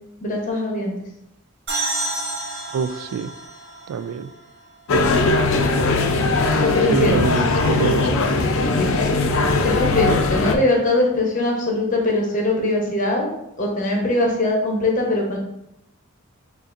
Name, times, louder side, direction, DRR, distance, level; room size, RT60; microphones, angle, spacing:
voice 1, 0.2-1.0 6.6-7.2 8.8-9.1 9.6-13.3 13.6-15.4, left 2 dB, 35° left, -1 dB, 0.8 m, -21 dB
sound 1, 1.7-5.2, right 2 dB, 55° right, 1.6 m, -30 dB
voice 2, 2.7-3.3 3.9-4.3 6.9-8.2, right 6 dB, 85° right, 13 dB, 0.3 m, -25 dB
sound 2, 4.9-10.5, left 3 dB, 65° left, 0.5 m, -19 dB
6.7 x 2.5 x 2.5 m, 0.83 s
head